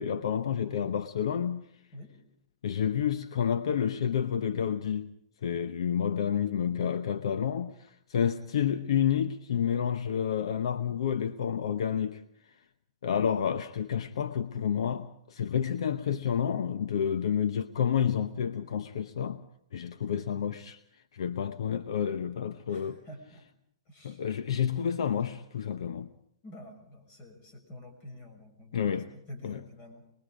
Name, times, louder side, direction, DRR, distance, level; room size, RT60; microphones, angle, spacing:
voice 1, 0.0-1.6 2.6-5.1 5.4-12.2 13.0-19.4 19.7-20.8 21.1-23.0 24.0-26.1 28.7-29.1 29.4-29.6, left 8 dB, 75° left, 0.9 m, -29 dB
voice 2, 22.7-23.4 23.9-24.2 26.4-30.0, left 1 dB, 35° left, 6.0 m, -48 dB
25.0 x 21.0 x 5.0 m
hypercardioid pair, 135°, 3 cm